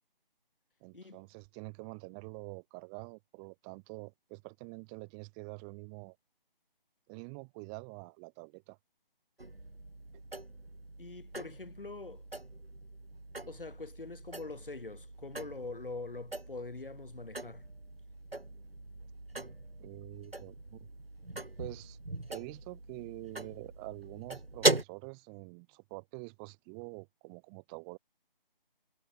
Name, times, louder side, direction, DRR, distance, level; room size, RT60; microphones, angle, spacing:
voice 1, 0.8-6.2 7.1-8.8 19.8-20.8 21.6-22.0 22.3-28.0, right 38 dB, 10° right, 1.2 m, -46 dB
sound 1, 9.4-24.8, right 2 dB, 80° right, 2.8 m, -39 dB
voice 2, 11.0-12.2 13.5-17.6, left 3 dB, 65° left, 2.7 m, -44 dB
figure-of-eight pair, 155°, 29 cm